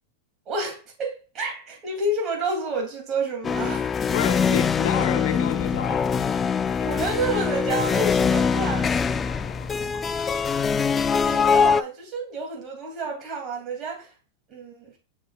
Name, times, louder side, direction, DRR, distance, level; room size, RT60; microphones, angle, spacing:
voice 1, 0.5-3.9 6.8-8.9 11.2-14.1 14.5-14.9, right 2 dB, 35° right, 2.8 m, -29 dB
sound 1, 3.4-11.8, left 6 dB, 20° left, 0.4 m, -23 dB
voice 2, 4.1-6.4 6.7-6.9 9.2-10.4, left 10 dB, 65° left, 1.0 m, -31 dB
6.9 x 6.3 x 2.4 m
hypercardioid pair, 110°, 0 cm